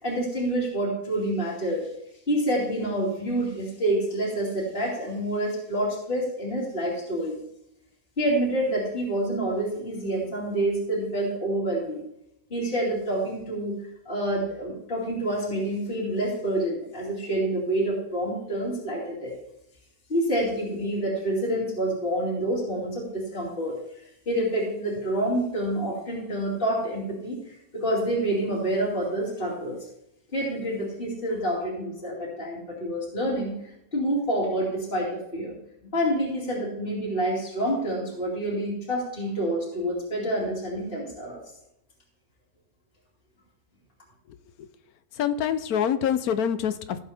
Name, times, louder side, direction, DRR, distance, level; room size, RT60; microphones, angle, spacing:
voice 1, 0.0-1.9 2.3-7.3 8.2-12.0 12.5-13.8 14.0-19.3 20.1-23.7 24.3-27.4 27.7-29.8 30.3-33.5 33.9-35.6 35.8-41.4, right 1 dB, 35° left, -6 dB, 2.9 m, -27 dB
voice 2, 44.3-44.7 45.1-47.0, left 8 dB, 85° left, 12 dB, 1.2 m, -26 dB
15.5 x 7.6 x 3.5 m, 0.81 s
omnidirectional pair, 1.5 m